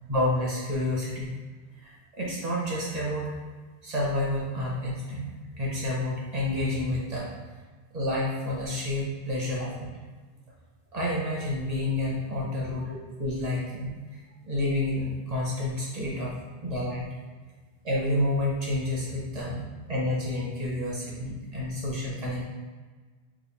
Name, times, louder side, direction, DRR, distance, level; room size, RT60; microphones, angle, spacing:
voice 1, 0.1-1.3 1.8-3.3 3.8-5.3 5.6-7.3 7.9-9.9 10.9-13.9 14.4-16.3 16.6-17.1 17.8-22.4, left 1 dB, 40° right, -4 dB, 0.8 m, -29 dB
3.5 x 2.3 x 3.3 m, 1.4 s
omnidirectional pair, 1.2 m